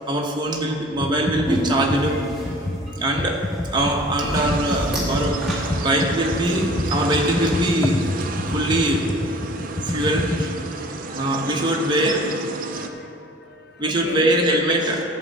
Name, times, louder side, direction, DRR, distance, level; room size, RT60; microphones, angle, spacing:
voice 1, 0.1-2.2 3.0-3.4 3.7-5.4 5.7-9.0 9.8-10.5 11.0-12.2 13.8-15.0, right 1 dB, 25° right, -1 dB, 1.1 m, -22 dB
Computer keyboard, 1.0-10.5, left 1 dB, 15° left, 0.3 m, -27 dB
sound 1, 1.5-6.5, equal, ahead, 1.9 m, -29 dB
sound 2, 4.3-12.9, right 4 dB, 45° right, 0.6 m, -32 dB
voice 2, 10.6-11.6 12.6-14.4, left 2 dB, 55° left, 6 dB, 0.6 m, -42 dB
11.0 x 7.8 x 4.2 m, 3.0 s
head